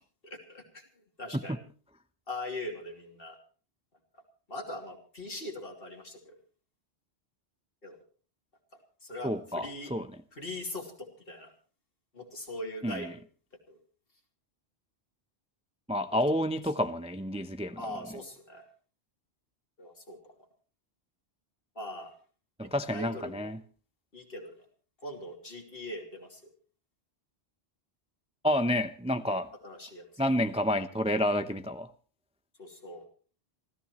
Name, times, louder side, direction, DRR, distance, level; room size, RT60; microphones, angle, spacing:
voice 1, 0.2-0.8 1.2-1.6 2.3-3.4 4.1-4.2 4.5-6.3 7.8-8.0 9.0-9.9 10.3-11.5 12.1-13.2 13.7-13.8 17.8-18.6 19.8-20.3 21.7-22.1 22.6-23.5 24.1-24.6 25.0-26.5 29.6-30.1 32.6-33.0, left 1 dB, 60° left, 3 dB, 3.1 m, -41 dB
voice 2, 9.2-10.1 12.8-13.1 15.9-17.8 22.6-23.6 28.4-29.5 30.2-31.9, left 1 dB, 5° right, 10 dB, 0.5 m, -29 dB
28.0 x 14.0 x 3.0 m, 0.39 s
omnidirectional pair, 1.1 m